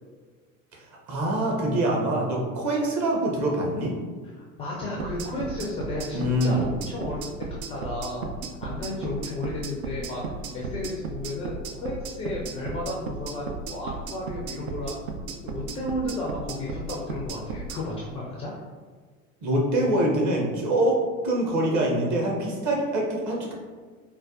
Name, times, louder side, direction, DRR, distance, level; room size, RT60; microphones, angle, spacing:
voice 1, 1.1-4.0 6.1-6.6 19.4-21.0 21.2-23.5, right 1 dB, 40° right, -1 dB, 0.9 m, -24 dB
voice 2, 4.3-8.3 8.6-15.0 15.4-18.5, left 2 dB, 15° left, -4 dB, 0.3 m, -33 dB
sound 1, 5.0-17.8, right 4 dB, 75° right, 0.5 m, -35 dB
4.4 x 2.3 x 2.4 m, 1.5 s
figure-of-eight pair, 75°, 43 cm